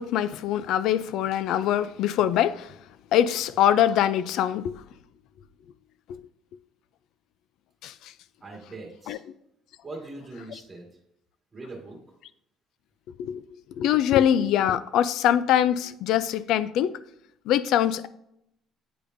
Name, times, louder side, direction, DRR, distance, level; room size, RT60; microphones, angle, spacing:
voice 1, 0.0-2.7 3.1-4.8 6.1-6.2 7.8-7.9 9.1-9.2 13.2-13.4 13.8-16.9 17.5-18.1, left 10 dB, 65° left, 0.4 m, -23 dB
voice 2, 8.4-9.2 9.8-11.0 11.5-12.0, right 2 dB, 15° right, 1.8 m, -41 dB
8.6 x 5.0 x 2.6 m
cardioid pair, 165°, 0 cm